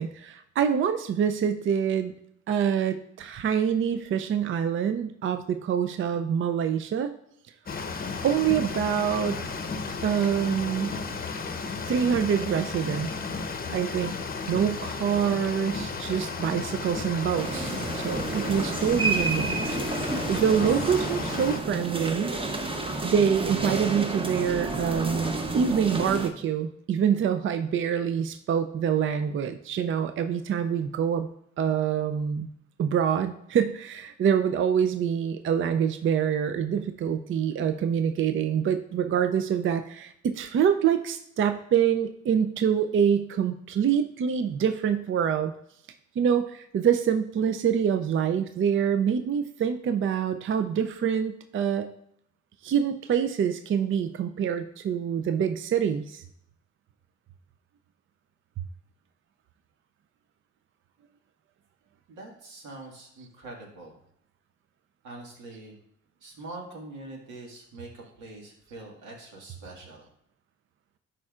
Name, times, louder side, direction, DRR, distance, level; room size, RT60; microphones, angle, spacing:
voice 1, 0.0-2.1 2.5-7.1 8.2-9.4 10.0-11.0 11.9-13.1 13.7-14.1 14.5-19.6 20.0-22.3 23.0-31.3 31.6-32.5 32.8-45.5 46.2-51.9 52.6-56.2, right 8 dB, 45° right, 9 dB, 0.4 m, -26 dB
sound 1, 7.7-21.6, left 4 dB, 30° left, 0.7 m, -34 dB
sound 2, 17.4-26.3, right 3 dB, 20° right, 0.8 m, -30 dB
voice 2, 62.1-63.9 65.0-65.8 66.2-70.1, right 2 dB, 90° right, -1 dB, 1.9 m, -44 dB
10.5 x 4.4 x 2.4 m, 0.73 s
cardioid pair, 90°, 30 cm